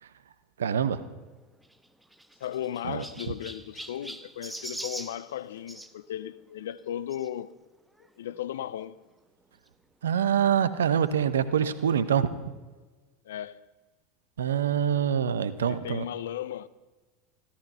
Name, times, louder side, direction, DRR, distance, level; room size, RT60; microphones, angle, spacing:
voice 1, 0.6-1.0 2.8-3.0 10.0-12.4 14.4-16.1, right 8 dB, 85° right, 1.0 m, -25 dB
Chirp tweet, 1.6-5.9 7.1-7.3 8.0-8.1 8.3-8.4 9.7-9.8, right 1 dB, 5° right, 1.2 m, -42 dB
voice 2, 2.4-7.5 8.2-9.0 13.2-13.7 15.6-16.7, left 11 dB, 75° left, 0.6 m, -36 dB
15.5 x 14.0 x 5.6 m
hypercardioid pair, 80°, 0 cm